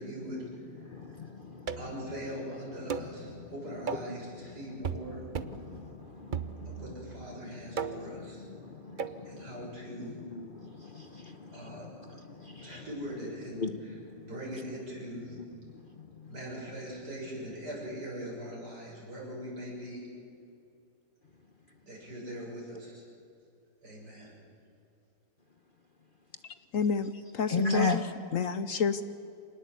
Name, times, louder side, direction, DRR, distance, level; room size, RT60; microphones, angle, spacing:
voice 1, 0.0-0.6 1.8-5.2 6.7-8.4 9.2-10.2 11.5-11.9 12.6-13.7 14.2-15.4 16.3-20.1 21.8-23.0 23.8-24.4, equal, 75° right, 7.7 m, -41 dB
voice 2, 0.7-1.8 2.8-3.5 3.9-4.5 4.9-12.9 13.4-14.3 14.7-14.8 15.3-16.3 17.4-17.5 27.5-28.1, left 3 dB, 35° left, 1.0 m, -38 dB
sound 1, 1.7-2.0 2.9-3.2 3.9-4.2 4.8-5.1 5.3-5.6 6.3-6.9 7.8-8.2 9.0-9.2, right 6 dB, 45° right, 0.7 m, -35 dB
voice 3, 26.7-28.0 28.3-29.0, left 5 dB, 60° left, 1.0 m, -29 dB
26.5 x 19.5 x 8.3 m
omnidirectional pair, 1.8 m